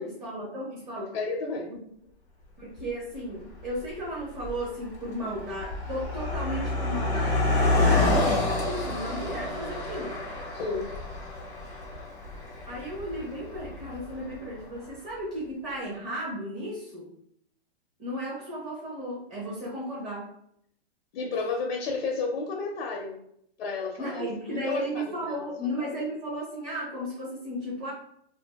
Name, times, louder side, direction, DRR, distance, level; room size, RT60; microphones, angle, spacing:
voice 1, 0.0-1.1 1.7-1.8 2.6-10.2 12.7-17.1 18.0-20.3 24.0-27.9, equal, 25° right, -6 dB, 0.7 m, -35 dB
voice 2, 1.1-1.7 5.2-5.3 7.7-8.1 10.5-10.9 21.1-23.2 23.6-25.5 25.8-25.9, left 4 dB, 60° left, 1 dB, 0.6 m, -32 dB
Car passing by, 2.8-2.9 3.7-3.9 4.2-14.6, left 2 dB, 10° left, 0.3 m, -28 dB
2.5 x 2.4 x 2.2 m, 0.70 s
hypercardioid pair, 135°, 33 cm